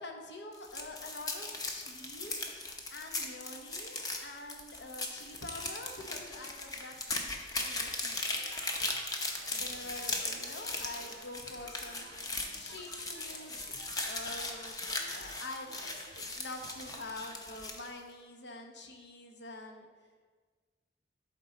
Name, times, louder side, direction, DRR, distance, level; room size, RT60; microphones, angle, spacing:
voice 1, 0.0-2.3 2.9-8.2 9.5-12.1 12.5-13.6 14.0-15.9 16.3-19.9, left 2 dB, 80° left, 3 dB, 1.0 m, -46 dB
sound 1, 0.5-17.9, left 2 dB, 20° left, 0.7 m, -38 dB
sound 2, 8.3-16.2, right 4 dB, 85° right, 0.6 m, -54 dB
11.5 x 4.5 x 4.0 m, 1.5 s
head